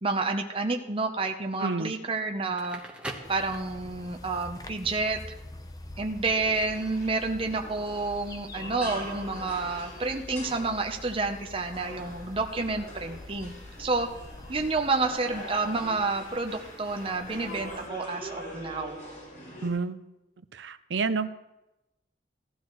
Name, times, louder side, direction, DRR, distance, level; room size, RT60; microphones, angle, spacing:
voice 1, 0.0-2.8 3.3-5.2 6.0-13.5 13.8-14.1 14.5-19.0, right 3 dB, 30° right, 3 dB, 0.8 m, -29 dB
voice 2, 1.6-1.9 19.6-20.0 20.5-21.3, right 4 dB, 70° right, 12 dB, 0.6 m, -29 dB
Crackle, 2.4-4.1, right 1 dB, 5° right, 1.1 m, -41 dB
sound 1, 3.2-17.9, left 2 dB, 20° left, 0.7 m, -46 dB
sound 2, 6.4-19.7, equal, 45° left, 4.8 m, -43 dB
17.0 x 13.0 x 3.1 m, 0.96 s
head